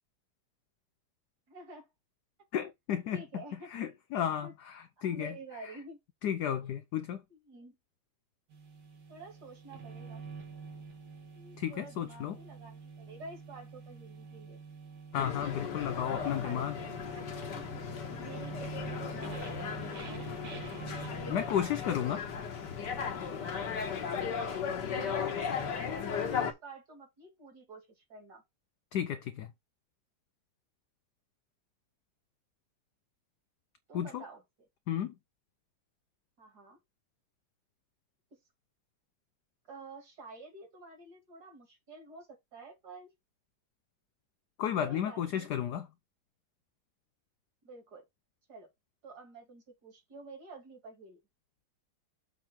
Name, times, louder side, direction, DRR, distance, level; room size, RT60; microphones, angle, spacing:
voice 1, 1.5-1.9 3.1-3.8 4.4-4.5 5.0-6.0 6.6-6.7 7.3-7.8 9.1-10.2 11.3-14.6 15.9-17.8 18.2-20.4 25.0-28.4 33.9-34.7 36.4-36.8 38.3-38.4 39.7-43.1 44.8-45.5 47.6-48.0 48.5-48.7 49.0-51.2, right 3 dB, 50° right, 2.8 m, -50 dB
voice 2, 2.5-3.4 3.7-5.3 6.2-7.2 11.6-12.4 15.1-16.7 21.3-22.3 28.9-29.5 33.9-34.2 34.9-35.1 44.6-45.9, left 9 dB, 80° left, 0.9 m, -33 dB
sound 1, 8.5-23.9, right 4 dB, 75° right, 2.9 m, -47 dB
sound 2, 15.1-26.5, left 6 dB, 60° left, 1.8 m, -36 dB
7.6 x 3.3 x 5.9 m
omnidirectional pair, 2.3 m